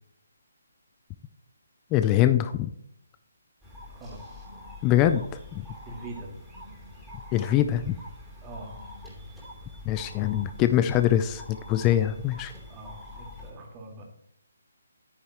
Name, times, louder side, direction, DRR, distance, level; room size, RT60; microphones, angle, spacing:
voice 1, 1.9-2.7 4.8-5.2 5.5-5.6 7.3-7.9 9.9-11.4 11.7-12.5, left 12 dB, 20° left, 9 dB, 0.4 m, -23 dB
sound 1, 3.6-13.5, left 1 dB, ahead, 3.0 m, -45 dB
voice 2, 3.9-4.2 5.8-6.3 8.4-8.8 12.7-14.0, right 2 dB, 20° right, -1 dB, 2.1 m, -42 dB
10.0 x 9.6 x 3.0 m, 0.72 s
hypercardioid pair, 160°, 0 cm